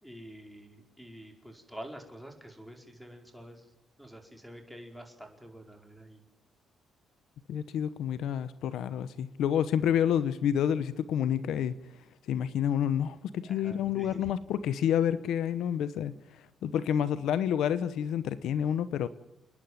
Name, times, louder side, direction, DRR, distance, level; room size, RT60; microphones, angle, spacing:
voice 1, 0.0-3.7 4.0-6.2 13.4-14.3, equal, ahead, 4 dB, 4.8 m, -47 dB
voice 2, 7.5-11.7 12.3-16.1 16.6-19.1, left 9 dB, 80° left, 15 dB, 0.9 m, -29 dB
30.0 x 10.5 x 9.5 m, 0.95 s
cardioid pair, 90°, 0 cm